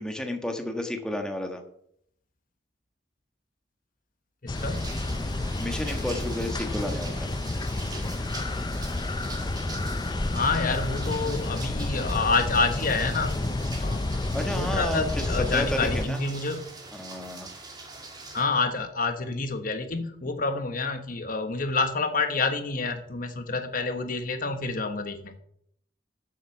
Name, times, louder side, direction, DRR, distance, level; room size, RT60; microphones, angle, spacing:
voice 1, 0.0-1.6 5.6-7.3 14.3-16.2 16.9-17.5, left 1 dB, 5° left, 3 dB, 1.4 m, -32 dB
voice 2, 4.4-4.9 10.3-16.6 18.3-25.4, left 3 dB, 50° left, 7 dB, 1.2 m, -28 dB
sound 1, 4.5-16.1, left 2 dB, 25° left, 0.5 m, -30 dB
sound 2, 4.5-18.4, right 2 dB, 20° right, 2.2 m, -42 dB
13.5 x 7.4 x 5.8 m, 0.69 s
head